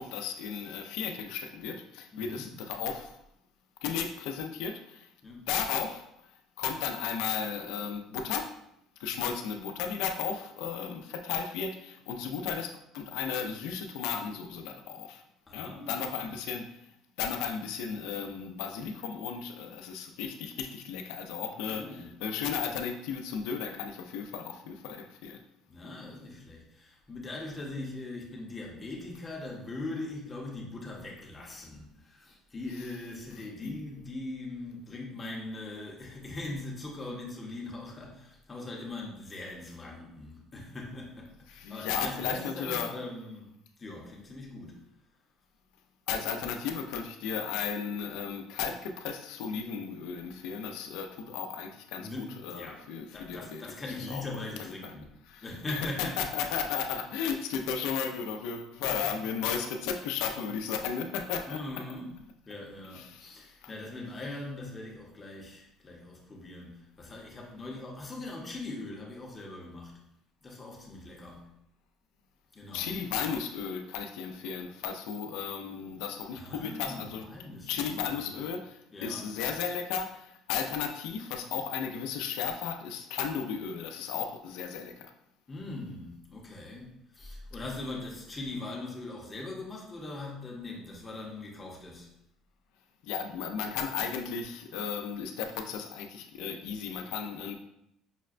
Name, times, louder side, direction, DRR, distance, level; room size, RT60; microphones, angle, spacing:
voice 1, 0.0-3.2 3.8-5.1 5.5-6.3 6.6-8.6 9.0-15.2 15.5-16.9 17.2-25.4 33.6-33.7 41.5-42.9 46.1-53.6 54.1-54.2 54.6-54.9 55.3-61.6 62.9-63.7 72.7-77.3 77.6-85.1 93.0-97.5, left 7 dB, 85° left, 5 dB, 0.4 m, -35 dB
voice 2, 2.1-2.6 5.2-5.4 15.5-16.4 21.6-22.2 25.7-43.5 43.8-44.8 52.0-52.8 53.1-55.1 55.4-56.5 58.8-59.2 61.4-62.2 62.5-70.0 70.4-71.5 72.5-73.0 76.3-78.4 78.9-79.3 85.5-92.1, left 2 dB, 20° left, -2 dB, 0.7 m, -41 dB
5.7 x 2.1 x 2.4 m, 0.77 s
cardioid pair, 145°, 0 cm